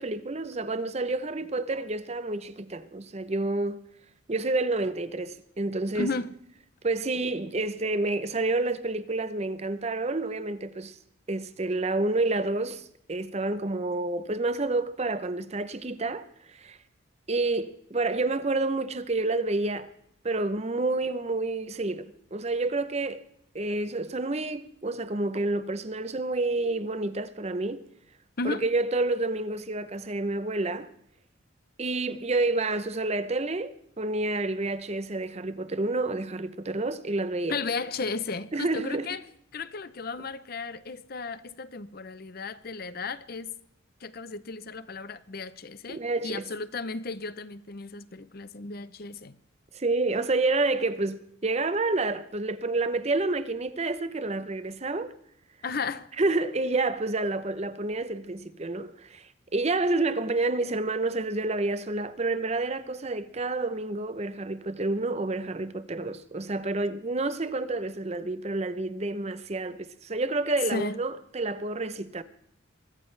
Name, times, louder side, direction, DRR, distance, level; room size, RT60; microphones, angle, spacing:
voice 1, 0.0-3.8 4.3-6.1 6.8-11.0 11.3-16.8 17.3-19.9 20.2-23.2 23.5-27.9 28.4-30.9 31.8-33.7 34.0-37.6 38.5-39.1 45.9-46.4 49.7-55.1 56.2-72.2, right 2 dB, 30° right, 0.7 m, -29 dB
voice 2, 5.9-6.3 28.4-28.6 37.5-39.3 39.5-43.5 44.0-49.4 55.6-56.1 70.7-71.0, left 4 dB, 45° left, 0.7 m, -34 dB
22.0 x 14.5 x 3.3 m
head